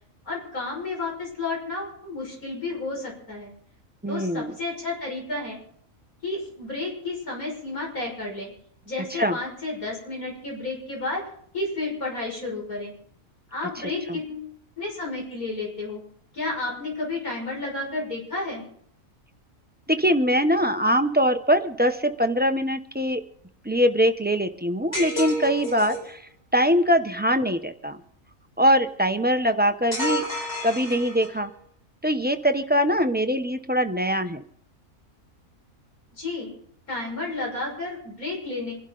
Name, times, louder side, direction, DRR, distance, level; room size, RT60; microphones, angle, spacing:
voice 1, 0.2-3.5 4.1-5.6 6.2-8.5 8.8-11.2 11.5-12.9 13.5-14.5 14.8-16.0 16.3-18.6 36.2-36.5 36.9-38.7, left 2 dB, 85° left, -2 dB, 6.6 m, -31 dB
voice 2, 4.0-4.5 9.2-9.4 13.8-14.2 19.9-23.2 23.6-26.3 26.5-28.0 28.6-30.2 30.6-31.5 32.0-34.4, equal, 10° right, 7 dB, 0.5 m, -22 dB
sound 1, 24.9-26.1 29.9-31.5, equal, 45° left, 5.2 m, -30 dB
26.5 x 12.0 x 3.9 m, 0.64 s
omnidirectional pair, 1.5 m